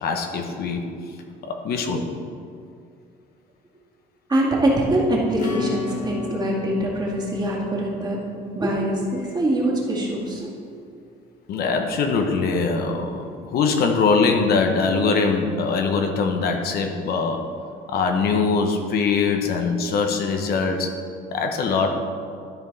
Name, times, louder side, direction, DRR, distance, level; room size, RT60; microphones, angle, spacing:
voice 1, 0.0-0.9 1.4-2.2 11.5-17.5 17.9-20.9 21.3-21.9, left 4 dB, 65° left, 4 dB, 0.9 m, -22 dB
voice 2, 4.3-10.5, right 1 dB, 25° right, -3 dB, 2.0 m, -23 dB
Acoustic guitar / Strum, 5.4-9.7, left 5 dB, 50° left, 1.2 m, -34 dB
12.5 x 4.6 x 4.1 m, 2.3 s
cardioid pair, 110°, 17 cm